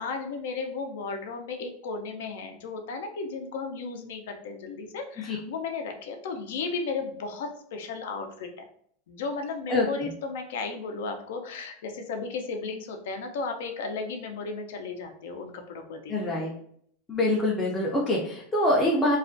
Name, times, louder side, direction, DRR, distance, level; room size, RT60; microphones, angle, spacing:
voice 1, 0.0-8.7 9.1-16.4 18.1-18.2, left 4 dB, 75° left, 4 dB, 0.4 m, -35 dB
voice 2, 9.7-10.1 16.1-16.5 17.1-19.2, left 1 dB, 15° left, -4 dB, 0.4 m, -25 dB
2.3 x 2.1 x 2.5 m, 0.64 s
supercardioid pair, 150°, 0 cm